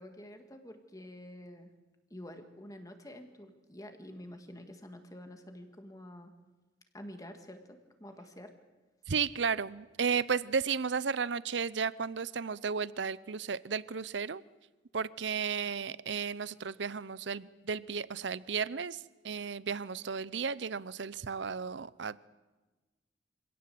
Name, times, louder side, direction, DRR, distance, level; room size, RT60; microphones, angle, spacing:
voice 1, 0.0-1.7 2.1-6.3 6.9-8.5, left 1 dB, 20° left, 6 dB, 1.9 m, -48 dB
voice 2, 9.1-14.4 14.9-22.3, right 6 dB, 70° right, 19 dB, 0.6 m, -34 dB
25.5 x 17.0 x 7.8 m, 1.2 s
head